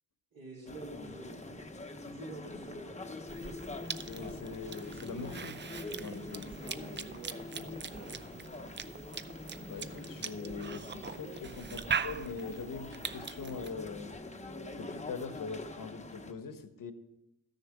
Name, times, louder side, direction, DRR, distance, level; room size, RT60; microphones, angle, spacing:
voice 1, 0.3-3.2 6.5-8.4, right 3 dB, 80° right, -3 dB, 2.9 m, -49 dB
sound 1, 0.7-16.3, left 2 dB, 20° left, 0.8 m, -44 dB
Cough / Chewing mastication, 3.3-13.7, right 6 dB, 35° right, 0.5 m, -41 dB
voice 2, 4.0-5.6 6.0-6.5 9.6-14.1 14.7-16.9, left 4 dB, 70° left, 9 dB, 1.0 m, -42 dB
12.5 x 6.7 x 4.8 m, 0.89 s
cardioid pair, 80°, 35 cm